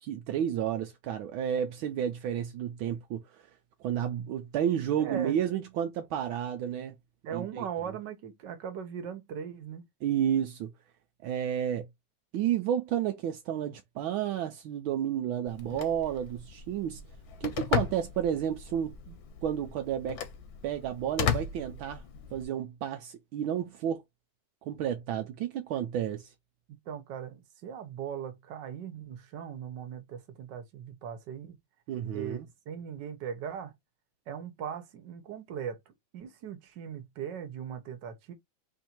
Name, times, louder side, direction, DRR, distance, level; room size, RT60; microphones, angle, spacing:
voice 1, 0.0-3.5 3.8-6.9 7.3-7.6 10.0-10.7 11.2-11.9 12.3-17.0 17.4-20.2 20.6-22.0 22.3-24.0 24.6-26.3 31.9-32.5, right 9 dB, 80° right, 1.5 m, -31 dB
voice 2, 5.0-5.4 7.2-9.8 26.7-31.6 32.1-33.7 34.3-38.3, right 8 dB, 65° right, 1.6 m, -39 dB
Telephone, 15.5-22.4, left 8 dB, 60° left, 1.2 m, -36 dB
4.4 x 2.7 x 4.3 m
omnidirectional pair, 2.2 m